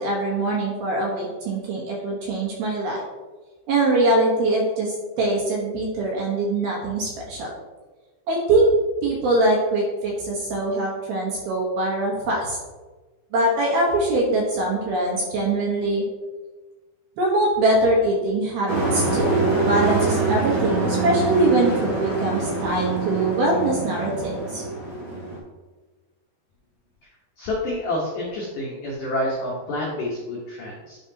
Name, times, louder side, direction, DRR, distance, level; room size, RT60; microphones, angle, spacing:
voice 1, 0.0-3.0 3.7-7.5 8.3-8.7 9.0-12.6 13.3-16.0 17.2-19.4 19.6-24.6, right 2 dB, 70° right, -3 dB, 2.7 m, -23 dB
Truck, 18.7-25.4, right 3 dB, 30° right, 1.6 m, -24 dB
voice 2, 27.4-31.0, left 1 dB, 70° left, -3 dB, 2.0 m, -28 dB
9.4 x 5.8 x 2.8 m, 1.3 s
omnidirectional pair, 5.1 m